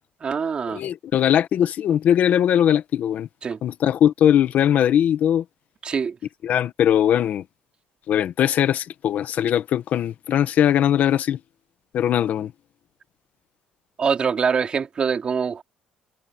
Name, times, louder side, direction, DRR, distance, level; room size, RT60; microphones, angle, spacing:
voice 1, 0.2-0.8 3.4-3.6 5.8-6.2 14.0-15.6, right 6 dB, 30° right, 3.5 m, -24 dB
voice 2, 0.7-3.3 3.6-5.4 6.4-7.4 8.1-11.4 11.9-12.5, left 10 dB, 55° left, 1.7 m, -20 dB
cardioid pair, 130°, 3 cm